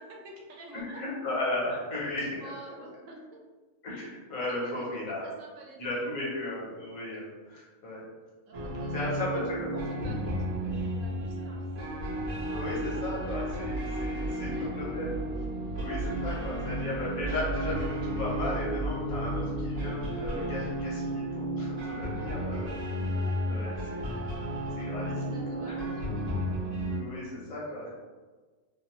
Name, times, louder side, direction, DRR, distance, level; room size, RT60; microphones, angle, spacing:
voice 1, 0.0-1.0 2.4-3.2 4.5-4.9 5.2-6.1 8.5-9.4 9.7-11.9 14.2-14.8 16.2-16.5 22.2-22.7 25.2-26.3, right 2 dB, 70° right, -1 dB, 0.9 m, -48 dB
voice 2, 0.8-2.5 3.8-5.3 5.8-8.0 8.9-10.1 12.5-15.1 15.7-22.7 23.5-24.1 24.8-25.8 26.8-27.9, left 1 dB, 85° left, -5 dB, 1.4 m, -35 dB
sound 1, 8.5-27.0, equal, 55° right, 0.4 m, -33 dB
sound 2, 12.1-20.0, right 2 dB, 65° left, 0.9 m, -37 dB
2.8 x 2.0 x 2.9 m, 1.4 s
omnidirectional pair, 1.4 m